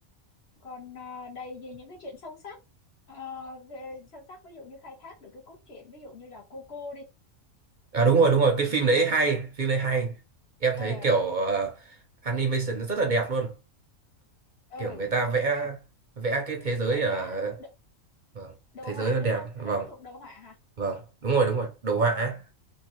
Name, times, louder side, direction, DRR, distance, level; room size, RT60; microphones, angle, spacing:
voice 1, 0.6-2.6 3.1-7.0 8.2-9.1 10.7-11.1 14.7-15.1 15.4-15.7 16.9-17.7 18.7-20.6 22.1-22.4, left 3 dB, 50° left, 1.4 m, -43 dB
voice 2, 7.9-10.2 10.6-11.9 12.2-13.5 14.8-15.8 16.2-17.5 18.3-18.5 18.9-19.9 20.8-22.4, right 4 dB, 45° right, 0.7 m, -25 dB
3.8 x 2.4 x 3.0 m
omnidirectional pair, 1.4 m